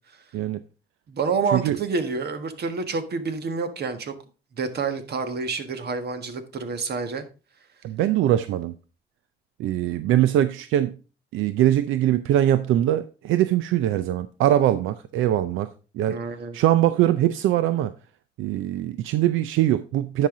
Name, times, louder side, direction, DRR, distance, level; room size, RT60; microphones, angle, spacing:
voice 1, 1.1-4.1 4.6-7.2 16.1-16.6, right 4 dB, 55° right, 1.5 m, -28 dB
voice 2, 7.8-8.7 9.6-11.0 11.3-15.7 15.9-16.2 16.5-17.9 18.4-20.3, right 12 dB, 85° right, 0.5 m, -22 dB
10.0 x 5.8 x 3.7 m
cardioid pair, 90°, 20 cm